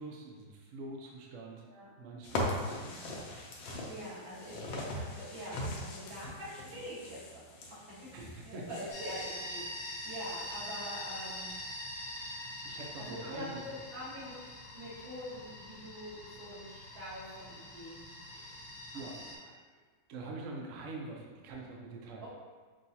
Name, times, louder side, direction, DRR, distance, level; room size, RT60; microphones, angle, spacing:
voice 1, 0.0-1.6 2.0-3.1 8.1-8.7 12.0-12.2 12.6-13.6 18.3-19.4 19.7-19.8 20.1-22.3, right 2 dB, 90° right, -1 dB, 0.7 m, -45 dB
sound 1, 2.2-9.4, left 1 dB, 75° left, 1.4 m, -40 dB
voice 2, 3.8-7.4 7.7-7.8 8.4-11.6 13.0-14.4 14.7-18.1 18.9-19.3 22.2-22.3, equal, 70° right, -9 dB, 2.2 m, -44 dB
sound 2, 8.9-19.3, left 1 dB, 60° left, 1.3 m, -44 dB
6.1 x 2.3 x 2.8 m, 1.4 s
omnidirectional pair, 2.2 m